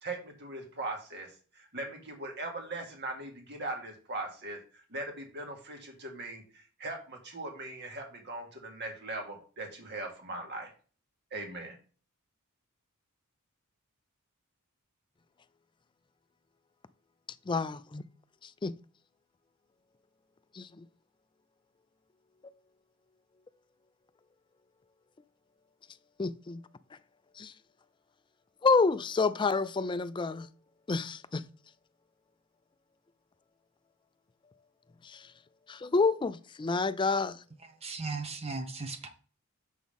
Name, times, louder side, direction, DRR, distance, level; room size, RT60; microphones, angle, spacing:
voice 1, 0.0-1.3 1.7-4.6 4.9-6.4 6.8-10.7 11.3-11.7, right 2 dB, 50° right, 1.8 m, -39 dB
voice 2, 17.5-18.0 18.6-18.7 20.5-20.8 26.2-26.6 27.4-27.5 28.6-30.5 30.9-31.4 35.0-35.2 35.7-37.4, left 4 dB, 20° left, 0.4 m, -28 dB
voice 3, 37.8-39.1, right 3 dB, 30° right, 0.9 m, -36 dB
7.2 x 6.1 x 3.5 m
head